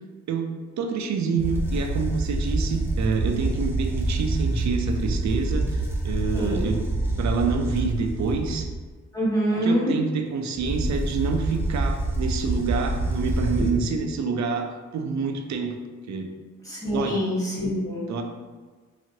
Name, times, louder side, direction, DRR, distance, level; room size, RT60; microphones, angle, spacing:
voice 1, 0.3-6.8 7.2-8.7 9.5-15.8 16.1-16.3 16.9-17.2 18.1-18.2, right 4 dB, 55° right, 4 dB, 0.5 m, -27 dB
sound 1, 1.4-8.8 10.5-14.0, right 2 dB, 5° right, 0.6 m, -27 dB
voice 2, 6.3-6.7 9.1-9.9 16.6-18.0, equal, 10° left, -6 dB, 1.5 m, -25 dB
2.9 x 2.4 x 2.9 m, 1.4 s
supercardioid pair, 50°, 33 cm